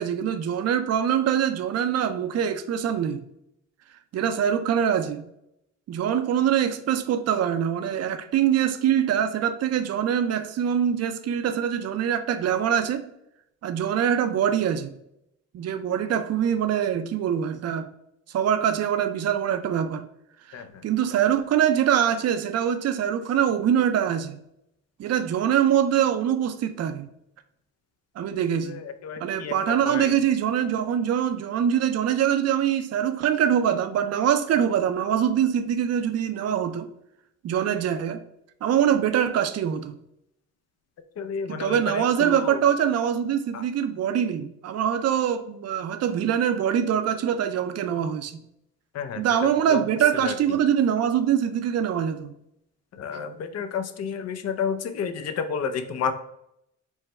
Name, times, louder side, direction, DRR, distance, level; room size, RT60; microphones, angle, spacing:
voice 1, 0.0-3.2 4.1-5.2 5.9-13.1 13.6-15.0 15.5-17.9 18.3-20.0 20.5-24.4 25.0-27.1 28.2-28.8 29.2-36.9 37.4-38.2 38.6-40.0 41.5-48.4 49.2-52.3, right 9 dB, 55° right, 0.5 m, -24 dB
voice 2, 29.0-29.5 29.9-30.1 41.2-42.4 49.0-49.2 49.7-49.8 50.2-50.3 53.0-56.1, left 6 dB, 55° left, 0.6 m, -30 dB
4.6 x 2.2 x 4.2 m
cardioid pair, 90°, 30 cm